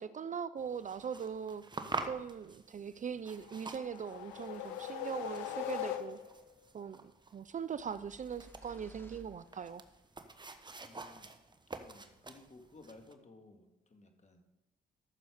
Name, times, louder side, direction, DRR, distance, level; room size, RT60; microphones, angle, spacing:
voice 1, 0.0-1.6 2.0-6.2 6.7-9.8, right 7 dB, 40° right, 15 dB, 0.5 m, -41 dB
sound 1, 0.6-13.1, right 3 dB, 25° right, 1.1 m, -48 dB
sound 2, 3.4-6.5, left 11 dB, 90° left, 0.8 m, -41 dB
sound 3, 7.7-10.1, equal, 10° left, 1.4 m, -58 dB
voice 2, 10.8-11.3 11.8-14.4, left 2 dB, 40° left, 5 dB, 2.1 m, -57 dB
13.0 x 7.0 x 5.0 m, 0.98 s
supercardioid pair, 55°, 19 cm